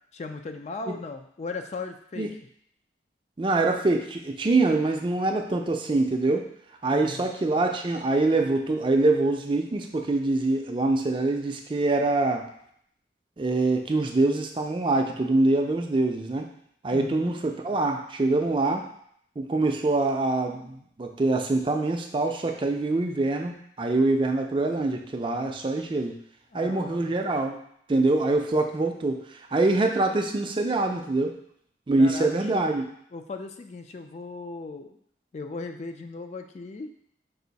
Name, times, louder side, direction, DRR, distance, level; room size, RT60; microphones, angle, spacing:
voice 1, 0.1-2.3 6.9-7.3 16.9-17.3 26.5-27.1 32.0-32.7 33.1-35.0 35.3-36.9, left 3 dB, 40° left, 6 dB, 0.3 m, -37 dB
voice 2, 3.4-6.5 6.8-12.4 13.4-16.5 16.8-18.8 19.4-26.1 26.5-27.6 27.9-31.3 31.9-32.8, right 2 dB, 30° right, 3 dB, 0.4 m, -24 dB
5.4 x 2.5 x 4.0 m, 0.68 s
head